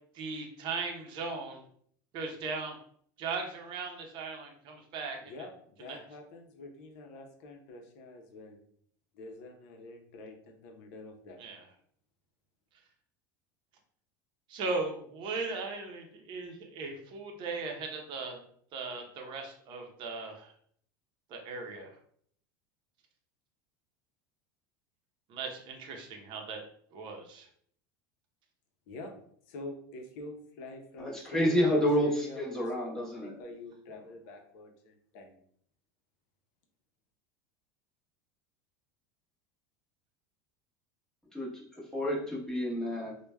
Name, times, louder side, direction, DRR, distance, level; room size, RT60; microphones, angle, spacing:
voice 1, 0.1-1.6 2.1-2.8 3.2-5.2 5.8-6.0 11.4-11.6 14.5-18.4 18.7-20.5 21.3-22.0 25.3-26.6 26.9-27.5, right 4 dB, 50° right, 3 dB, 0.7 m, -38 dB
voice 2, 5.2-8.6 9.1-11.4 28.9-29.1 29.5-35.4, left 2 dB, 65° left, 3 dB, 0.7 m, -46 dB
voice 3, 31.0-33.3 41.3-41.5 41.9-43.1, equal, 5° left, -5 dB, 1.0 m, -29 dB
3.2 x 2.2 x 2.2 m, 0.62 s
supercardioid pair, 110°, 10 cm